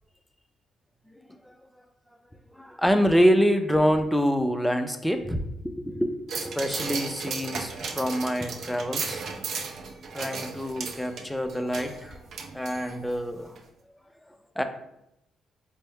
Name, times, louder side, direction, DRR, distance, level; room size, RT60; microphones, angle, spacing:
voice 1, 2.6-9.2 10.1-12.2 12.5-13.6 14.6-14.7, equal, 5° left, 7 dB, 0.4 m, -26 dB
sound 1, 6.3-13.2 13.6-13.7, right 5 dB, 65° right, 0.5 m, -35 dB
4.3 x 2.0 x 3.4 m, 0.81 s
cardioid pair, 90°, 0 cm